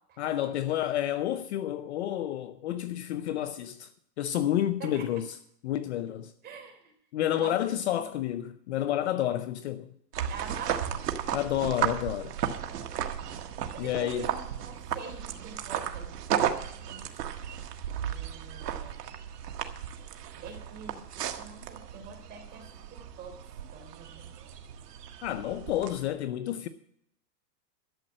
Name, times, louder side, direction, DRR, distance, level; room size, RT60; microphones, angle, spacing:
voice 1, 0.2-3.9 4.2-6.3 7.1-9.9 11.3-12.3 13.8-14.3 25.2-26.7, left 12 dB, 45° left, 0.6 m, -30 dB
voice 2, 6.4-6.8 7.4-8.0 10.3-10.8 13.7-17.4 18.0-18.9 20.3-23.4 23.7-24.3, right 5 dB, 20° right, 3.4 m, -45 dB
sound 1, 10.1-26.1, right 9 dB, 70° right, 1.6 m, -35 dB
12.5 x 7.7 x 7.4 m
hypercardioid pair, 155°, 49 cm